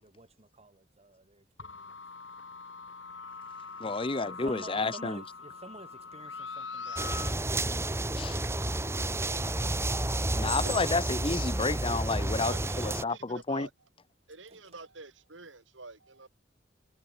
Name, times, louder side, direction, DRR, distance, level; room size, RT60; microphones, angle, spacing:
voice 1, 0.0-1.9 3.8-7.5 14.5-14.8, right 2 dB, 35° right, 3.2 m, -51 dB
sound 1, 1.6-7.3, left 4 dB, 80° left, 7.4 m, -42 dB
voice 2, 3.8-5.2 8.2-8.4 10.3-13.7, left 3 dB, 30° left, 0.9 m, -31 dB
sound 2, 7.0-13.0, right 1 dB, 15° right, 1.3 m, -31 dB
voice 3, 10.6-11.0 12.4-13.7 14.3-16.3, right 3 dB, 90° right, 3.7 m, -47 dB
head